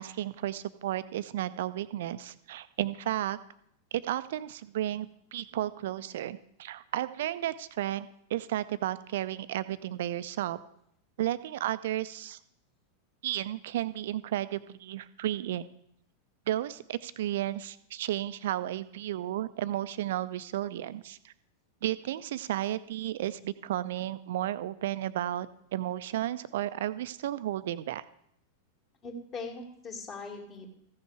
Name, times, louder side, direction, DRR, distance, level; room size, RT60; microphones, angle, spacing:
voice 1, 0.0-3.4 3.9-10.6 11.2-12.4 13.2-15.6 16.5-21.3 21.8-25.5 25.7-28.0, right 13 dB, 55° right, 15 dB, 0.5 m, -33 dB
voice 2, 29.0-30.7, left 3 dB, 30° left, 1 dB, 2.4 m, -40 dB
14.5 x 6.4 x 4.8 m, 0.74 s
figure-of-eight pair, 90°, 0 cm